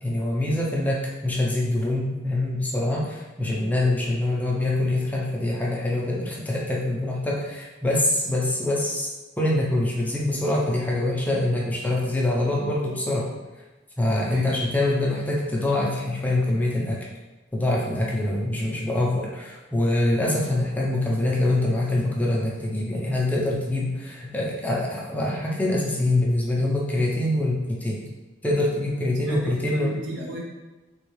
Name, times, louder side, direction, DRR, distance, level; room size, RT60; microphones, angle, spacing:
voice 1, 0.0-9.1 9.4-13.3 14.0-17.1 17.5-28.1 28.4-30.0, left 1 dB, 10° left, -3 dB, 0.5 m, -24 dB
voice 2, 29.2-30.4, right 2 dB, 80° right, -3 dB, 0.8 m, -34 dB
3.4 x 2.3 x 3.1 m, 1.1 s
head